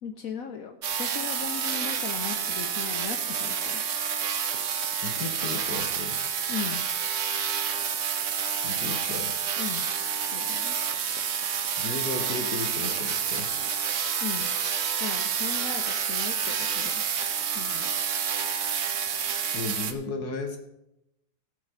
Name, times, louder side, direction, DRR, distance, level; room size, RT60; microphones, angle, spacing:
voice 1, 0.0-3.8 6.5-6.8 9.6-9.8 10.3-10.8 14.2-14.5 15.0-17.0 17.5-17.9, left 7 dB, 65° left, 7 dB, 1.1 m, -37 dB
sound 1, 0.8-19.9, right 7 dB, 55° right, 1.1 m, -29 dB
voice 2, 5.0-6.2 8.6-9.3 11.8-13.5 19.5-20.6, left 3 dB, 85° left, 5 dB, 1.7 m, -34 dB
14.5 x 5.7 x 6.4 m, 0.85 s
omnidirectional pair, 1.7 m